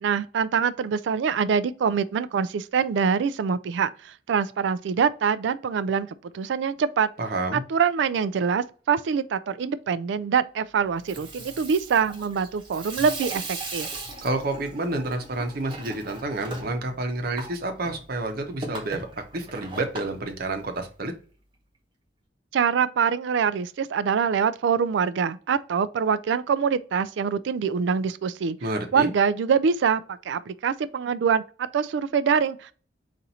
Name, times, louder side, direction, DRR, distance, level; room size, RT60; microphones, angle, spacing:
voice 1, 0.0-6.1 6.3-7.1 7.5-13.9 22.5-28.6 28.9-30.0 30.3-31.4 31.7-32.7, right 6 dB, 70° right, 0.3 m, -24 dB
voice 2, 7.2-7.6 14.2-21.1 28.6-29.1, right 2 dB, 55° right, 0.8 m, -29 dB
Water tap faucet / Sink (filling or washing), 10.9-21.1, right 2 dB, 25° right, 0.9 m, -39 dB
4.2 x 2.5 x 4.0 m
head